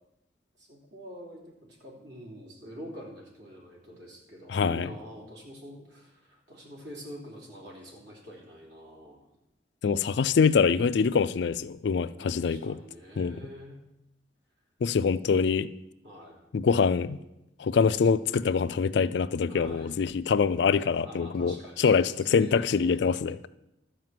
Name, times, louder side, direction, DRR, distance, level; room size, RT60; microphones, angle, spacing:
voice 1, 0.6-9.2 12.1-13.8 16.0-16.4 19.5-20.0 21.0-23.0, equal, 65° right, -2 dB, 3.3 m, -46 dB
voice 2, 4.5-4.9 9.8-12.8 13.2-13.4 14.8-15.7 16.5-17.2 17.6-23.5, left 5 dB, 60° left, 14 dB, 0.4 m, -24 dB
12.5 x 5.0 x 7.6 m, 0.88 s
head